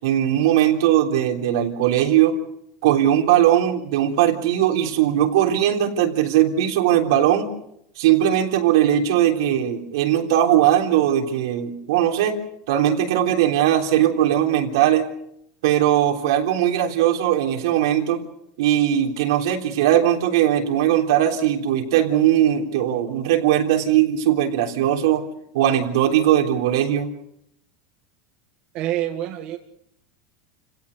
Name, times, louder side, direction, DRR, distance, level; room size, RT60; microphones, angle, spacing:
voice 1, 0.0-2.4 2.8-7.5 8.0-12.4 12.7-15.1 15.6-18.2 18.6-25.2 25.5-27.1, right 11 dB, 80° right, 3 dB, 3.5 m, -19 dB
voice 2, 28.7-29.6, right 13 dB, 45° right, 4 dB, 1.7 m, -26 dB
29.5 x 17.0 x 6.7 m, 0.76 s
supercardioid pair, 145°, 2 cm